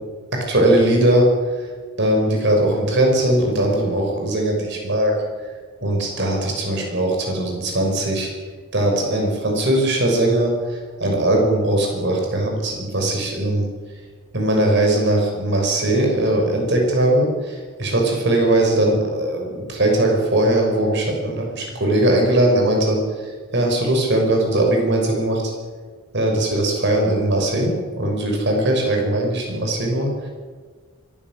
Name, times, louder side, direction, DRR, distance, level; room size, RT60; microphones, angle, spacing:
voice 1, 0.3-1.3 1.6-1.7 2.0-5.1 5.8-8.3 8.7-13.7 14.3-25.5 26.1-30.3, right 1 dB, 55° right, 1 dB, 6.4 m, -20 dB
23.5 x 15.5 x 7.7 m, 1.5 s
head